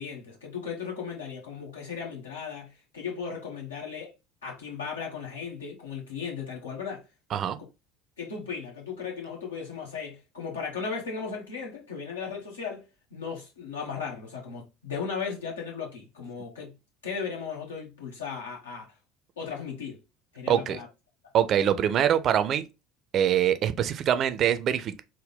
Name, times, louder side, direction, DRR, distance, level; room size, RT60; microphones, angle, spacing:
voice 1, 0.0-4.1 4.4-7.0 8.2-12.8 13.1-16.7 17.0-18.9 19.4-20.0 20.3-20.9, left 6 dB, 80° left, 1.2 m, -36 dB
voice 2, 20.5-20.8 21.3-22.6 23.1-25.0, right 10 dB, 45° right, 0.4 m, -24 dB
3.9 x 2.1 x 3.5 m
figure-of-eight pair, 65°, 0 cm